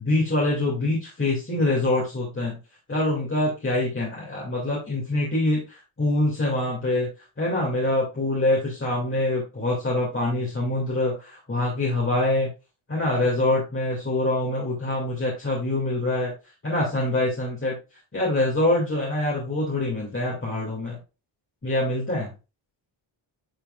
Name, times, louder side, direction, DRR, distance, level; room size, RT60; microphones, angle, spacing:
voice 1, 0.0-2.6 2.9-7.1 7.4-12.5 12.9-16.3 16.6-17.8 18.1-21.0 21.6-22.3, left 2 dB, 25° left, -5 dB, 2.2 m, -25 dB
9.4 x 4.5 x 2.3 m, 0.29 s
wide cardioid pair, 115°, 49 cm